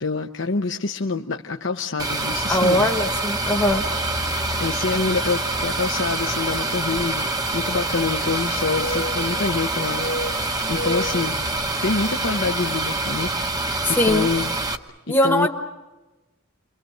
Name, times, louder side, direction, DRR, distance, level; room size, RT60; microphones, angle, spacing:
voice 1, 0.0-2.9 4.6-7.3 7.5-10.1 10.7-11.4 11.8-13.3 13.9-14.5 15.2-15.5, left 4 dB, 65° left, 3 dB, 0.9 m, -26 dB
sound 1, 2.0-14.8, right 2 dB, 20° right, 1.0 m, -26 dB
voice 2, 2.5-3.8 13.8-14.3 15.1-15.5, left 1 dB, 10° left, 1 dB, 1.3 m, -20 dB
sound 2, 5.2-5.3 7.2-8.4 8.7-9.6 10.0-11.3, equal, 90° left, 1.9 m, -32 dB
29.5 x 24.5 x 6.6 m, 1.1 s
head